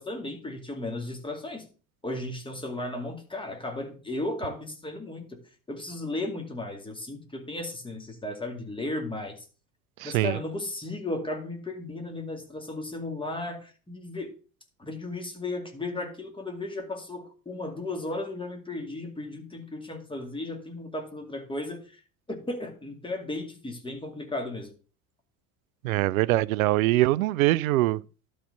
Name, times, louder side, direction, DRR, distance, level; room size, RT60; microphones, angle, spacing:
voice 1, 0.0-1.7 2.0-5.4 5.7-9.4 10.0-14.3 14.8-22.0 22.3-24.7, left 2 dB, 10° left, 2.3 m, -35 dB
voice 2, 10.0-10.4 25.8-28.0, right 17 dB, 65° right, 0.5 m, -23 dB
11.5 x 4.2 x 6.4 m
figure-of-eight pair, 65°, 45 cm